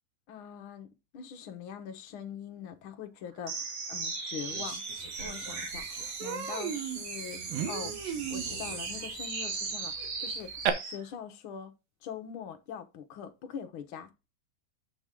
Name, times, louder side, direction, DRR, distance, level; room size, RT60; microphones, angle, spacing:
voice 1, 0.3-4.8 5.2-7.4 7.7-7.9 8.3-10.5 10.8-11.7 12.0-14.1, left 8 dB, 85° left, 1.1 m, -43 dB
sound 1, 3.5-11.0, right 4 dB, 50° right, 2.8 m, -37 dB
Human voice, 5.2-5.3 5.6-5.8 6.2-10.7, right 9 dB, 80° right, 2.7 m, -36 dB
8.0 x 6.8 x 3.7 m
omnidirectional pair, 4.0 m